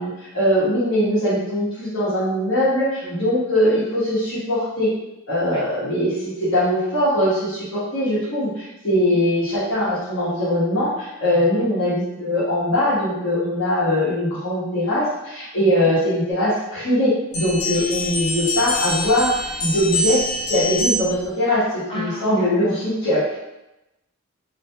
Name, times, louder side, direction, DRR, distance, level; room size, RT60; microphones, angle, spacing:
voice 1, 0.0-4.9 5.3-21.6 21.9-23.2, left 1 dB, 70° left, -12 dB, 1.1 m, -21 dB
voice 2, 3.0-3.3 5.4-5.6 8.9-9.2 11.3-11.7 15.6-16.0 21.4-21.5 21.9-22.8 23.3-23.4, left 2 dB, 25° left, -5 dB, 0.6 m, -34 dB
sound 1, 17.3-21.3, left 1 dB, 90° left, 0.8 m, -25 dB
2.7 x 2.4 x 2.2 m, 0.93 s
head